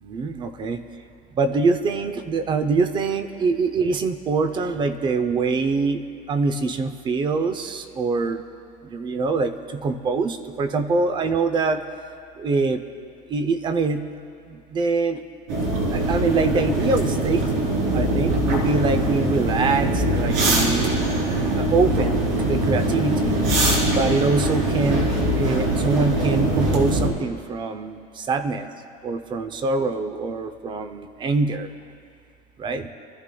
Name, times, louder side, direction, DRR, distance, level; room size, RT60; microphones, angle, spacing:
voice 1, 0.0-0.8 1.3-6.0 6.3-8.4 8.8-11.8 12.4-12.8 13.3-14.0 14.5-15.2 15.9-17.5 17.9-21.0 21.5-22.2 22.4-23.3 23.9-25.1 25.3-28.7 29.0-31.7 32.6-32.9, right 4 dB, 25° right, 10 dB, 0.6 m, -24 dB
sound 1, 15.5-27.1, right 1 dB, 85° right, 3.6 m, -22 dB
27.0 x 14.0 x 2.3 m, 2.3 s
cardioid pair, 165°, 19 cm